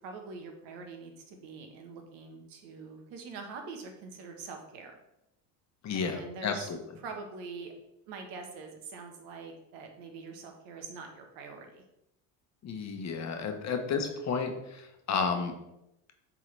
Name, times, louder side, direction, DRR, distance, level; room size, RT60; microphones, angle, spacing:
voice 1, 0.0-4.9 5.9-6.7 7.0-7.7 8.1-11.8, right 4 dB, 70° right, 4 dB, 1.3 m, -44 dB
voice 2, 5.8-6.8 12.6-15.5, left 5 dB, 40° left, 5 dB, 1.0 m, -32 dB
7.5 x 3.8 x 3.3 m, 0.84 s
supercardioid pair, 100°, 44 cm